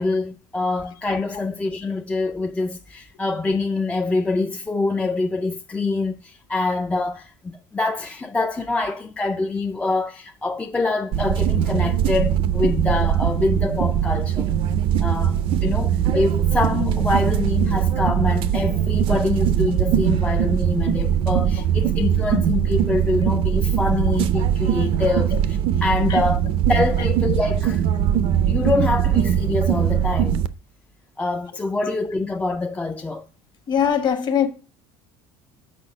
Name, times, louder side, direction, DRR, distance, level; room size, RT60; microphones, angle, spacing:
voice 1, 0.0-14.5 15.0-26.4 26.7-27.8 28.1-30.4 31.2-33.3, left 3 dB, 10° left, 0.4 m, -25 dB
sound 1, 11.1-30.5, right 10 dB, 50° right, 0.5 m, -21 dB
voice 2, 33.7-34.5, left 8 dB, 35° left, 1.1 m, -20 dB
6.5 x 5.2 x 4.9 m
cardioid pair, 135°, 12 cm